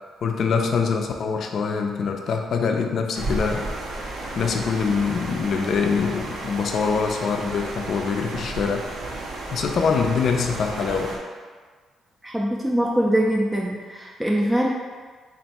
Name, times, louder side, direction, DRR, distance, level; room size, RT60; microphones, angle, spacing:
voice 1, 0.2-3.7 4.4-8.9 9.5-11.2, left 5 dB, 60° left, 3 dB, 0.4 m, -24 dB
sound 1, 3.1-11.2, right 2 dB, 70° right, 0.6 m, -33 dB
voice 2, 12.2-14.7, equal, 10° right, -3 dB, 0.4 m, -23 dB
3.4 x 2.5 x 4.1 m, 1.5 s
cardioid pair, 90°, 0 cm